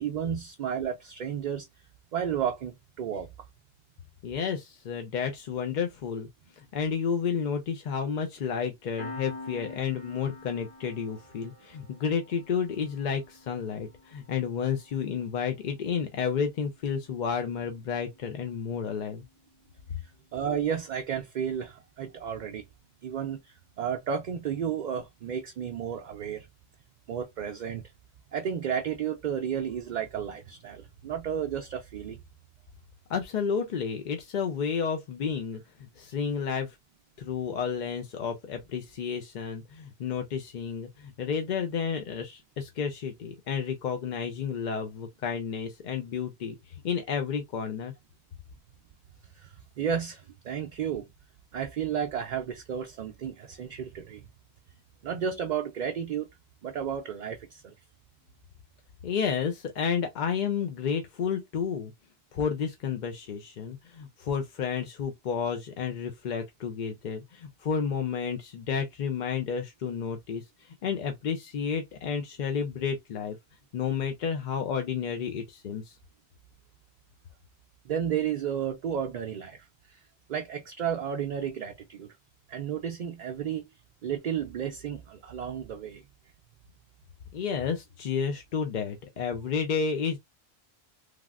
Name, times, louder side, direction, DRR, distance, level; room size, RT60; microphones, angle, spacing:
voice 1, 0.0-1.7 2.1-3.3 20.0-22.6 23.0-26.5 27.1-27.8 28.3-32.2 49.3-51.1 51.5-54.3 55.0-56.3 56.6-57.7 77.8-80.0 80.3-82.1 82.5-83.7 84.0-86.0, right 8 dB, 55° right, 0.5 m, -32 dB
voice 2, 4.2-6.3 6.6-19.2 33.1-36.8 37.2-47.9 59.0-61.9 62.3-73.4 73.7-76.0 87.3-90.2, left 6 dB, 55° left, 0.6 m, -31 dB
Piano, 9.0-20.1, left 2 dB, 40° left, 1.6 m, -48 dB
3.3 x 2.4 x 2.3 m
omnidirectional pair, 1.1 m